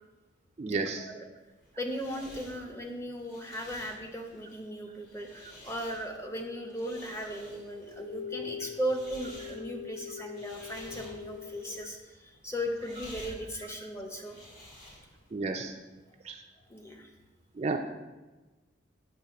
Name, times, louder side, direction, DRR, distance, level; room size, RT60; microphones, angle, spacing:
voice 1, 0.6-1.1 15.3-15.7 16.2-16.4 17.6-17.8, right 3 dB, 35° right, 4 dB, 0.3 m, -32 dB
sound 1, 1.4-15.3, left 1 dB, 90° left, 2.1 m, -51 dB
voice 2, 1.8-14.4 16.7-17.1, equal, 15° left, 2 dB, 0.7 m, -37 dB
sound 2, 6.3-11.9, left 7 dB, 60° left, 0.7 m, -44 dB
8.1 x 3.1 x 5.8 m, 1.2 s
head